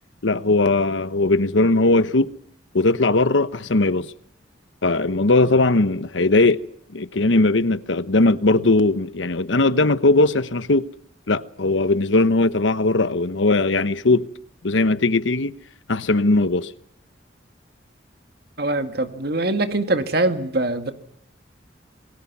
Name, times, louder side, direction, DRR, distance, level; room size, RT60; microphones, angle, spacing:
voice 1, 0.2-2.4 2.7-4.1 4.8-6.6 6.9-10.9 11.3-14.3 14.6-15.6 15.9-16.7, left 2 dB, 85° left, 1.0 m, -19 dB
voice 2, 18.6-20.9, right 2 dB, 55° right, 1.9 m, -23 dB
28.0 x 23.0 x 6.1 m
head